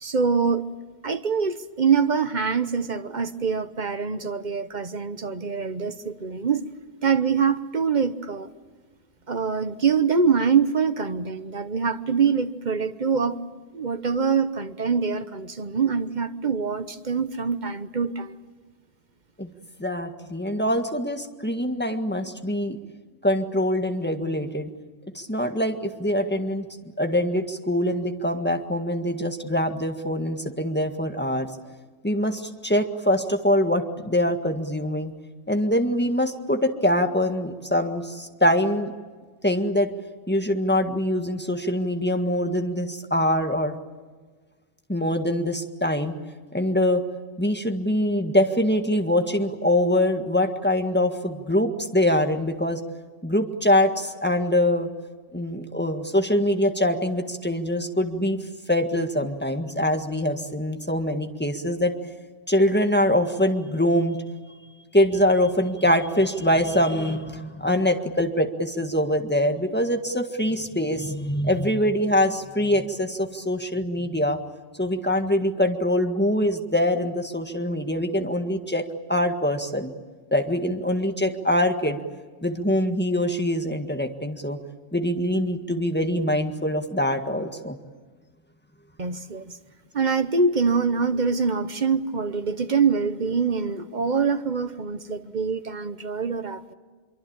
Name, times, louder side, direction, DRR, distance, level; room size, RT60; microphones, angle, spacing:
voice 1, 0.0-0.6 1.0-6.7 7.0-8.5 9.3-13.4 13.7-18.4 89.0-89.5 89.9-96.7, right 5 dB, 35° right, 10 dB, 0.9 m, -24 dB
voice 2, 19.8-22.8 23.2-24.7 25.1-26.7 27.0-31.5 32.0-35.1 35.5-38.9 39.4-39.9 40.3-43.7 44.9-46.1 46.5-47.0 47.4-52.8 53.2-54.9 55.3-58.4 58.7-61.9 62.5-64.2 64.9-74.4 74.8-78.8 79.1-79.9 80.3-82.0 82.4-84.6 84.9-87.8, left 1 dB, 5° left, 5 dB, 1.6 m, -24 dB
24.5 x 24.0 x 8.8 m, 1.4 s
omnidirectional pair, 1.6 m